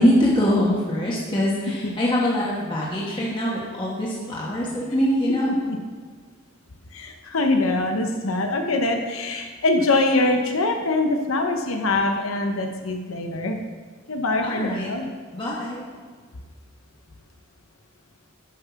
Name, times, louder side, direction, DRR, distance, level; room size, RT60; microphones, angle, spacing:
voice 1, 0.0-5.5 14.4-14.9 15.3-15.8, equal, 25° left, -6 dB, 1.3 m, -23 dB
voice 2, 6.9-13.6 14.1-15.0, left 2 dB, 80° left, 4 dB, 0.9 m, -23 dB
9.7 x 5.7 x 5.8 m, 1.5 s
head